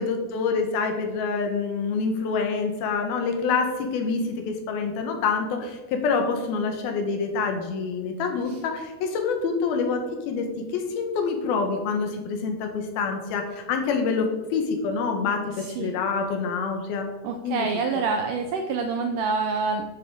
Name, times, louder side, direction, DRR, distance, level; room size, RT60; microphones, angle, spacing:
voice 1, 0.0-17.1 17.4-17.7 18.0-18.1, left 5 dB, 80° left, 4 dB, 2.9 m, -26 dB
voice 2, 15.6-16.0 17.2-19.8, right 4 dB, 85° right, 5 dB, 1.8 m, -27 dB
9.9 x 7.7 x 3.6 m, 1.2 s
omnidirectional pair, 4.4 m